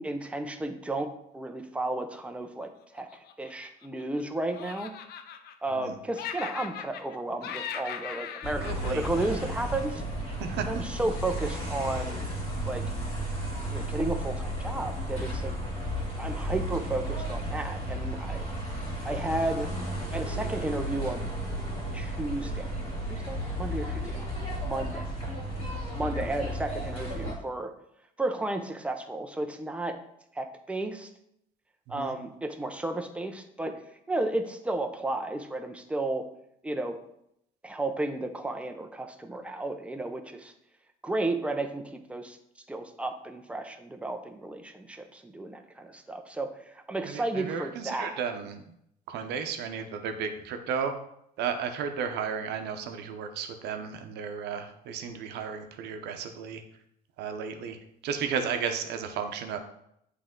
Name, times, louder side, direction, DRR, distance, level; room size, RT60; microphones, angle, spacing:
voice 1, 0.0-3.1 3.4-4.9 5.6-10.0 10.7-12.3 12.7-12.8 13.7-15.5 16.2-18.5 19.0-19.7 20.1-21.3 21.9-22.7 23.1-24.2 24.6-25.1 25.9-27.7 28.2-29.9 30.3-31.1 31.9-33.7 34.1-36.2 36.6-37.0 37.6-40.5 41.0-42.4 42.7-48.2, right 2 dB, 5° right, 5 dB, 0.6 m, -33 dB
Laughter, 3.0-4.2 4.5-5.9 6.1-7.2 7.4-10.0, left 8 dB, 70° left, 0.6 m, -39 dB
sound 1, 8.4-27.3, right 1 dB, 35° left, 2.5 m, -33 dB
voice 2, 8.6-9.0 10.4-10.8 26.1-26.3 31.9-32.2 47.0-48.6 49.1-50.9 51.4-56.6 57.2-57.8 58.0-59.6, right 6 dB, 80° right, 6 dB, 0.8 m, -34 dB
7.7 x 3.3 x 3.7 m, 0.75 s
cardioid pair, 110°, 17 cm